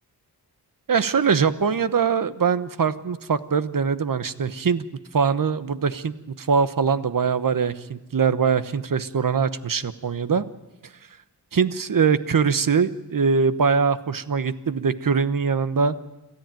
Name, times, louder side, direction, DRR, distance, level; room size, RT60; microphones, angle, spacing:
voice 1, 0.9-4.8 5.1-10.4 11.5-15.9, right 6 dB, 55° right, 13 dB, 1.1 m, -22 dB
27.5 x 13.5 x 9.1 m, 1.1 s
wide cardioid pair, 90°, 39 cm